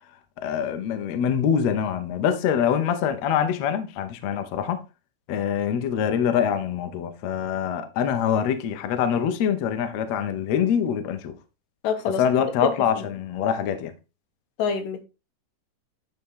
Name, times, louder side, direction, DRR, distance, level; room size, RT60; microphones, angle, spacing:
voice 1, 0.4-4.8 5.3-11.3 12.2-13.9, left 8 dB, 70° left, 1.8 m, -24 dB
voice 2, 11.8-12.2 12.6-12.7 12.9-13.1 14.6-15.0, left 6 dB, 85° left, 2.7 m, -26 dB
9.8 x 4.3 x 3.7 m
omnidirectional pair, 3.7 m